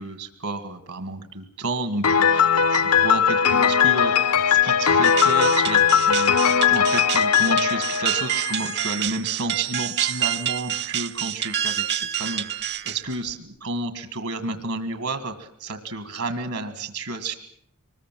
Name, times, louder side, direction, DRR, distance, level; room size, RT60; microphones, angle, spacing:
voice 1, 0.0-17.3, right 3 dB, 75° right, 9 dB, 1.9 m, -31 dB
Piano, 2.0-8.9, left 7 dB, 85° left, 0.9 m, -19 dB
sound 1, 5.0-13.3, right 10 dB, 50° right, 0.9 m, -28 dB
24.5 x 20.5 x 7.6 m, 0.68 s
head